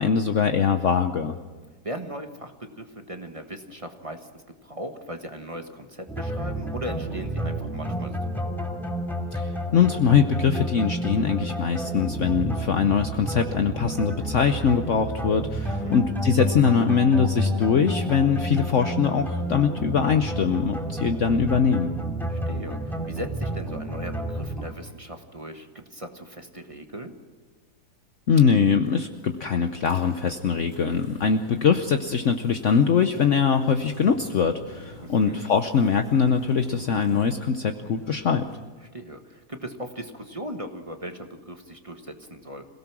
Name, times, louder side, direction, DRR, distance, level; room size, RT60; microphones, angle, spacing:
voice 1, 0.0-1.4 9.3-21.9 28.3-38.4, left 6 dB, 55° left, 7 dB, 1.1 m, -22 dB
voice 2, 1.8-8.4 15.8-16.0 22.2-27.1 35.0-35.4 38.9-42.7, equal, 20° right, 5 dB, 1.3 m, -38 dB
sound 1, 6.1-24.7, equal, ahead, 2.5 m, -30 dB
sound 2, 28.8-38.6, right 1 dB, 75° right, 8.4 m, -45 dB
26.5 x 17.0 x 6.1 m, 1.4 s
omnidirectional pair, 1.7 m